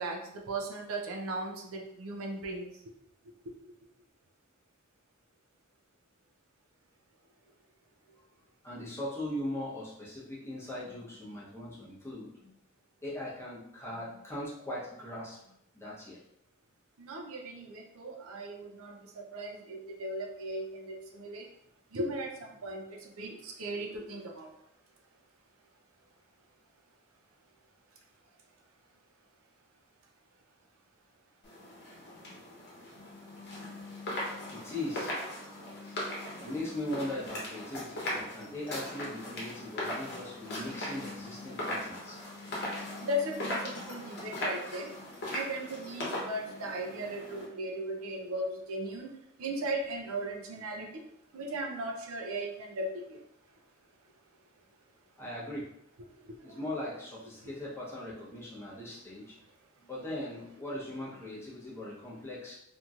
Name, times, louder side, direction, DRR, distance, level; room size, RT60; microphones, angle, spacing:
voice 1, 0.0-2.7 17.0-21.5 21.9-24.5 43.0-44.9 45.3-49.1 49.4-50.9 51.3-53.2 56.3-56.6, right 1 dB, 70° right, 1 dB, 0.5 m, -37 dB
voice 2, 8.6-12.5 13.0-15.4 15.7-16.2 34.5-35.1 35.8-36.0 36.4-42.2 55.2-55.7 56.4-59.4 59.8-62.5, left 1 dB, 10° left, -6 dB, 0.8 m, -39 dB
sound 1, 31.4-47.5, left 1 dB, 50° left, 0.9 m, -39 dB
2.9 x 2.6 x 2.4 m, 0.76 s
head